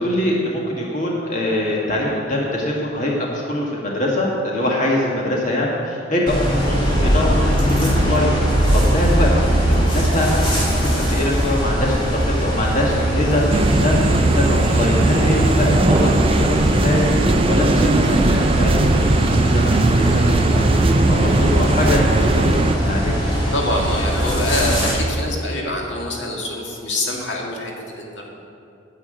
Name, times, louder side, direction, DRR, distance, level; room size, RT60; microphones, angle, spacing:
voice 1, 0.0-23.2, left 1 dB, 45° left, -3 dB, 1.7 m, -23 dB
sound 1, 6.3-24.9, right 1 dB, 25° left, 2.8 m, -20 dB
sound 2, 13.5-22.8, right 2 dB, 30° right, 0.5 m, -19 dB
voice 2, 23.5-24.8 25.1-28.3, left 1 dB, 70° left, -1 dB, 2.1 m, -25 dB
10.0 x 7.5 x 8.9 m, 2.5 s
head